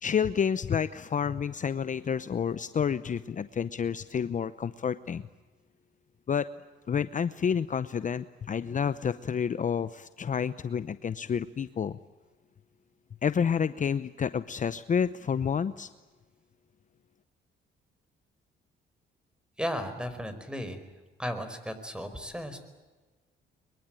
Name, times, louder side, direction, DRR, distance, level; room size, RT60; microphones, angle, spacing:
voice 1, 0.0-5.3 6.3-6.5 6.9-12.0 13.2-15.9, left 7 dB, 40° left, 14 dB, 0.8 m, -29 dB
voice 2, 19.6-20.8 21.2-22.6, equal, 5° right, 10 dB, 4.7 m, -35 dB
23.0 x 22.5 x 9.0 m, 1.3 s
cardioid pair, 90°, 20 cm